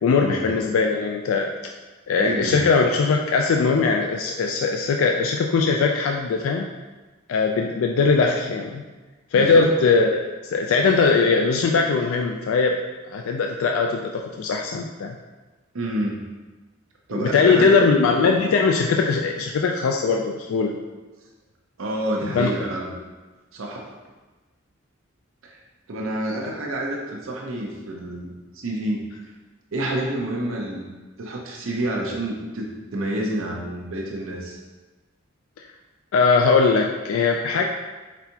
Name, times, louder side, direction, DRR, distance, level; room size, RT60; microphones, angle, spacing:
voice 1, 0.0-1.5 2.1-6.7 7.3-8.8 9.3-10.2 10.5-12.8 13.1-15.2 17.1-20.7 22.2-22.5 36.1-37.6, left 4 dB, 80° left, 2 dB, 0.3 m, -20 dB
voice 2, 2.2-2.7 9.3-9.7 15.7-16.2 17.1-17.8 21.8-22.9 23.5-23.9 25.4-25.6 25.9-29.0 29.7-30.9 31.2-34.6, right 1 dB, 75° right, -1 dB, 0.7 m, -28 dB
4.4 x 4.1 x 2.8 m, 1.2 s
head